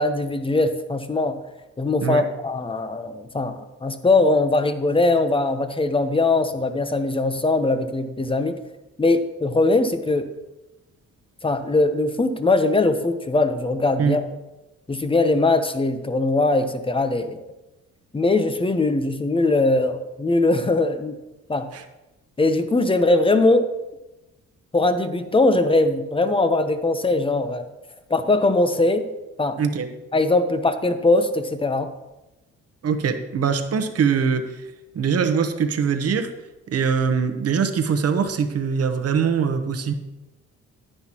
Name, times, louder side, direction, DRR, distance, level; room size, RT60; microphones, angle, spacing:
voice 1, 0.0-1.4 1.8-8.6 9.0-10.3 11.4-14.2 14.9-17.4 18.1-21.2 21.5-21.7 22.4-23.7 24.7-27.6 28.1-29.1 29.4-29.6 30.1-31.9, left 2 dB, 20° left, 9 dB, 0.8 m, -21 dB
voice 2, 29.6-29.9 32.8-34.7 34.9-36.3 36.7-39.9, right 6 dB, 55° right, 8 dB, 1.0 m, -22 dB
10.0 x 9.8 x 3.0 m, 1.0 s
cardioid pair, 90°, 30 cm